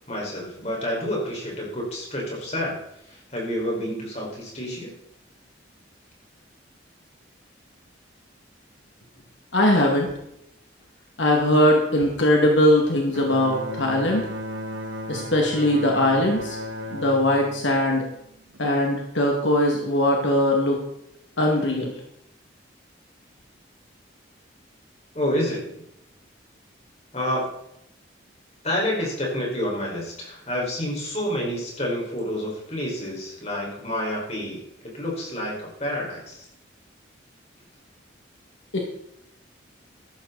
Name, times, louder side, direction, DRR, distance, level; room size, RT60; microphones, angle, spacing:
voice 1, 0.1-2.8 3.1-4.9 25.1-25.8 27.1-27.4 28.6-34.6 34.9-36.4, left 1 dB, 35° left, -2 dB, 5.1 m, -28 dB
voice 2, 9.5-10.1 11.2-14.2 15.1-16.6 16.9-18.1 18.6-20.8 21.4-21.9 38.7-38.8, left 1 dB, 75° left, 0 dB, 2.3 m, -20 dB
Bowed string instrument, 13.1-18.6, equal, 80° right, 1.8 m, -35 dB
15.0 x 11.5 x 4.1 m, 0.78 s
head